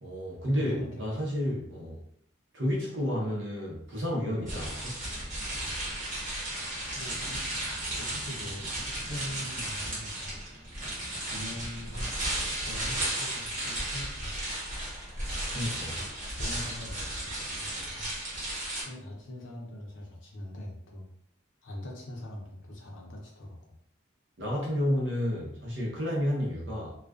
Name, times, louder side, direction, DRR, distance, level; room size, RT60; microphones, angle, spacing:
voice 1, 0.0-2.0 2.5-5.0 15.5-15.9 24.4-27.0, equal, 60° right, -3 dB, 0.8 m, -31 dB
voice 2, 0.6-1.5 6.9-7.4 8.0-10.4 11.3-12.1 12.6-14.4 15.6-16.1 16.3-18.1 18.8-21.1 21.6-23.8, left 1 dB, 65° left, 0 dB, 0.6 m, -42 dB
sound 1, 4.4-19.3, equal, 20° right, 0.5 m, -51 dB
sound 2, 4.5-18.8, right 1 dB, 40° right, 0.9 m, -34 dB
2.3 x 2.3 x 2.3 m, 0.70 s
head